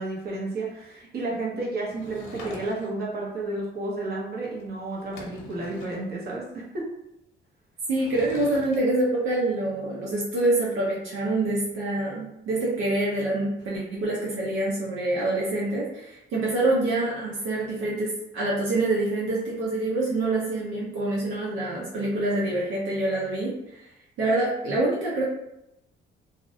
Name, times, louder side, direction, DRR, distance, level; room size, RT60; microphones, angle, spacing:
voice 1, 0.0-6.8, right 2 dB, 50° right, -4 dB, 0.9 m, -32 dB
Sliding door / Wood, 1.9-3.1 4.6-4.7 4.9-6.1 7.8-8.8, left 2 dB, 80° left, 0.6 m, -44 dB
voice 2, 7.9-23.8 24.2-25.2, right 2 dB, 80° right, -5 dB, 0.6 m, -26 dB
2.4 x 2.1 x 2.6 m, 0.84 s
cardioid pair, 90°, 20 cm